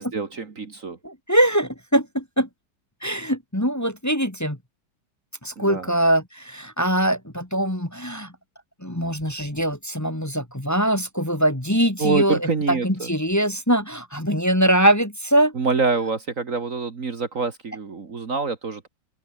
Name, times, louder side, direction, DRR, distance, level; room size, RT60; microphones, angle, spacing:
voice 1, 0.0-1.0 5.6-5.9 12.0-13.1 15.5-18.9, right 4 dB, 45° right, 2.2 m, -26 dB
voice 2, 1.0-2.5 3.0-4.6 5.4-8.3 8.8-15.5, right 1 dB, 10° left, 2.4 m, -22 dB
open air
omnidirectional pair, 1.9 m